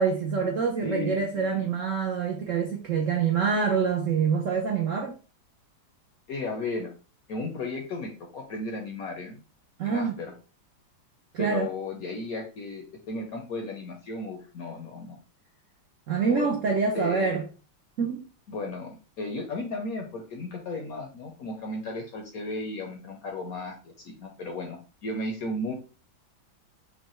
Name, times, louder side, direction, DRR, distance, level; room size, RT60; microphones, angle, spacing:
voice 1, 0.0-5.1 9.8-10.1 11.3-11.7 16.1-17.4 18.0-18.2, right 5 dB, 80° right, 0.7 m, -26 dB
voice 2, 0.8-1.6 6.3-6.9 7.3-9.4 9.8-10.3 11.4-15.2 16.3-16.5 16.9-17.4 18.5-25.7, left 2 dB, 70° left, 0.8 m, -35 dB
5.4 x 2.1 x 3.0 m
omnidirectional pair, 2.1 m